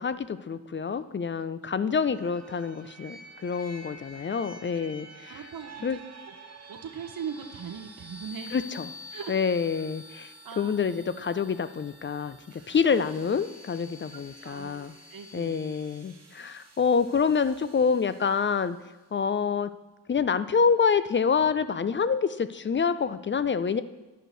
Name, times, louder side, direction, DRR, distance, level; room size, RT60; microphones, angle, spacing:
voice 1, 0.0-5.4 5.8-6.0 8.5-8.9 9.3-14.9 15.3-18.8 19.1-19.7 20.1-23.8, left 6 dB, 30° left, 14 dB, 0.4 m, -27 dB
sound 1, 2.1-18.8, left 1 dB, 40° right, 1.1 m, -48 dB
voice 2, 5.3-6.0 6.3-8.6 9.1-9.4 10.1-10.7 12.8-13.0 14.1-15.6, right 7 dB, 55° right, 6 dB, 0.8 m, -41 dB
11.0 x 4.6 x 3.9 m, 1.1 s
cardioid pair, 60°, 41 cm